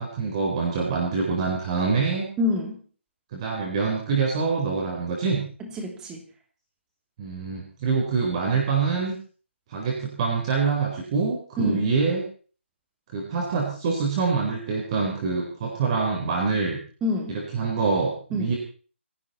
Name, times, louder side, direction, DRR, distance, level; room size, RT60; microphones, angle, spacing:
voice 1, 0.0-2.3 3.3-5.4 7.2-9.1 9.7-12.2 13.1-16.8 17.3-18.6, right 4 dB, 30° right, 0 dB, 4.1 m, -25 dB
voice 2, 2.4-2.8 5.6-6.2 11.6-11.9 17.0-17.4 18.3-18.5, left 2 dB, 10° right, 3 dB, 2.8 m, -27 dB
28.0 x 11.0 x 4.3 m, 0.41 s
figure-of-eight pair, 155°, 7 cm